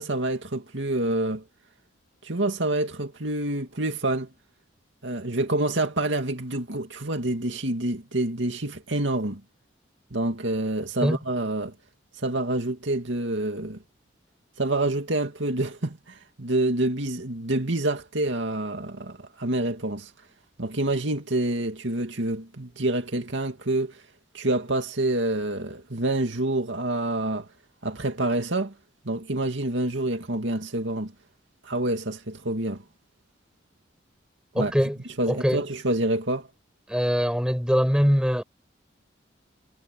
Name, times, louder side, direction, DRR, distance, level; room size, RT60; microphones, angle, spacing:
voice 1, 0.0-1.4 2.2-4.3 5.0-9.4 10.1-11.7 12.2-13.8 14.6-20.1 20.6-24.0 24.3-27.5 27.8-28.7 29.0-31.1 31.6-32.8 34.6-34.7 35.2-36.5, right 2 dB, 75° right, 2.4 m, -27 dB
voice 2, 34.5-35.0 35.3-35.6 36.9-38.4, equal, 5° right, 7.0 m, -22 dB
head